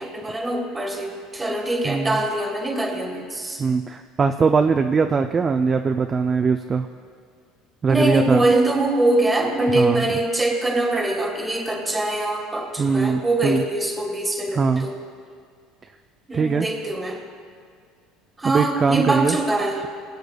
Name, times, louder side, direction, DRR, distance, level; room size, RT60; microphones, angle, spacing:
voice 1, 0.0-3.6 7.9-15.0 16.3-17.2 18.4-19.8, right 2 dB, 15° right, 2 dB, 1.4 m, -23 dB
voice 2, 1.8-2.2 3.6-6.9 7.8-8.4 9.7-10.0 12.8-13.6 14.5-14.9 16.3-16.7 18.4-19.4, right 5 dB, 30° right, 6 dB, 0.4 m, -21 dB
19.0 x 7.8 x 2.3 m, 2.1 s
supercardioid pair, 95°, 0 cm